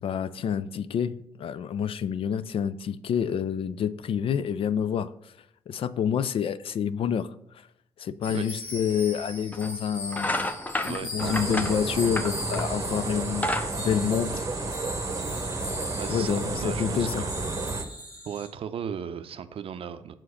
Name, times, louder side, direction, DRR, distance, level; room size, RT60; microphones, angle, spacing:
voice 1, 0.0-5.3 5.7-7.3 8.0-10.5 10.8-14.5 16.1-17.3, left 8 dB, 45° left, 15 dB, 0.4 m, -28 dB
sound 1, 8.2-18.5, left 1 dB, 85° left, 1.7 m, -40 dB
voice 2, 8.3-8.7 10.9-11.5 16.0-17.3 18.2-20.1, right 8 dB, 50° right, 11 dB, 0.6 m, -36 dB
sound 2, 8.8-8.9 9.5-9.7 10.1-12.8 13.2-14.8, left 1 dB, 10° left, 0.8 m, -31 dB
sound 3, 11.2-17.8, right 3 dB, 25° right, 0.9 m, -31 dB
5.9 x 4.6 x 6.4 m, 0.79 s
figure-of-eight pair, 40°, 13 cm